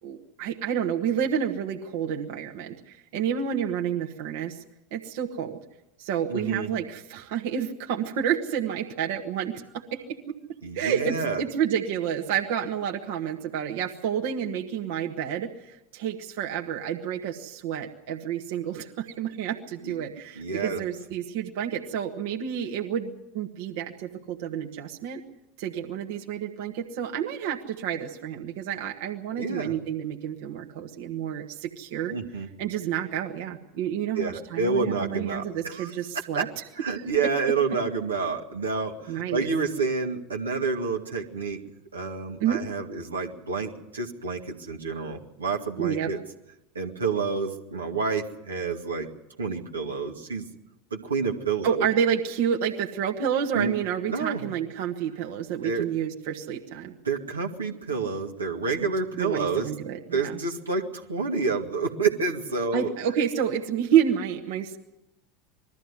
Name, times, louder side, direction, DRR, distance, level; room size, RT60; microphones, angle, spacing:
voice 1, 0.0-4.6 4.9-5.6 6.0-10.0 10.7-25.2 25.6-32.2 32.6-36.6 39.1-39.5 42.4-42.6 45.8-46.1 51.6-56.9 59.1-60.4 62.7-64.8, right 8 dB, 60° right, 2 dB, 1.5 m, -29 dB
voice 2, 6.3-6.7 10.6-11.4 19.8-19.9 20.4-20.8 29.4-29.8 32.1-32.5 34.2-35.9 36.3-36.4 36.8-41.6 41.9-46.2 46.8-49.1 49.4-50.5 50.9-51.9 53.5-53.7 54.1-54.5 55.6-55.9 57.0-59.7 60.1-62.9, right 4 dB, 85° right, 1 dB, 1.9 m, -29 dB
21.0 x 13.5 x 9.8 m, 0.92 s
figure-of-eight pair, 80°, 0 cm